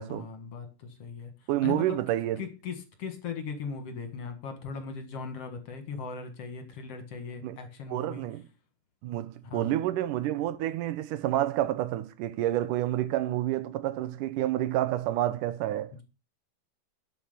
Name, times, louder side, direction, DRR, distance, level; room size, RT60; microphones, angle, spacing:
voice 1, 0.0-1.3 1.6-2.0 2.4-8.2 9.4-9.7, left 5 dB, 55° left, 2.5 m, -38 dB
voice 2, 1.5-2.4 7.4-7.6 7.9-8.4 9.0-15.9, right 13 dB, 85° right, 2.4 m, -29 dB
11.5 x 6.1 x 6.8 m
omnidirectional pair, 3.6 m